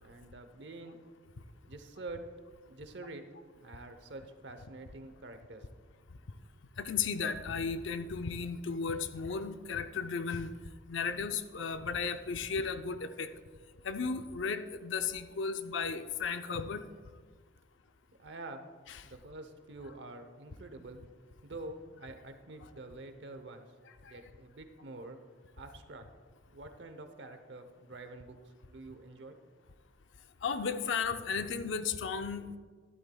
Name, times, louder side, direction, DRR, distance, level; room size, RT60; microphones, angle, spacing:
voice 1, 0.0-1.0 1.7-2.2 2.7-3.2 3.6-5.7 18.2-18.7 19.0-21.0 21.4-23.7 24.0-25.2 25.6-26.0 26.5-28.4 28.6-29.4, right 2 dB, 65° right, 8 dB, 0.8 m, -47 dB
voice 2, 6.8-10.5 10.9-13.3 13.8-16.8 18.9-19.0 24.1-24.2 30.4-32.5, left 5 dB, 85° left, 9 dB, 0.5 m, -34 dB
12.5 x 11.0 x 2.3 m, 1.5 s
head